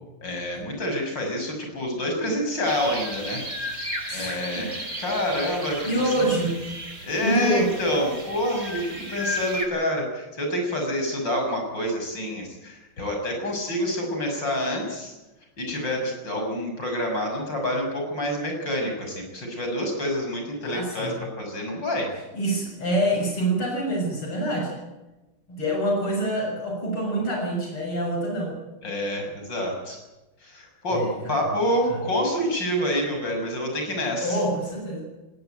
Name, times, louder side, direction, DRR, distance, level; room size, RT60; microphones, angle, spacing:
voice 1, 0.2-3.8 4.1-6.1 7.0-15.1 15.6-22.1 28.8-30.0 30.4-34.4, equal, 55° left, 2 dB, 7.2 m, -27 dB
sound 1, 2.6-9.7, equal, 35° right, 4.5 m, -34 dB
voice 2, 4.1-4.7 5.9-6.6 7.2-7.7 20.6-21.2 22.3-24.8 25.5-28.5 30.9-31.3 31.9-32.0 34.2-35.0, right 1 dB, 85° left, -1 dB, 7.5 m, -26 dB
19.5 x 18.5 x 9.2 m, 1.0 s
omnidirectional pair, 2.3 m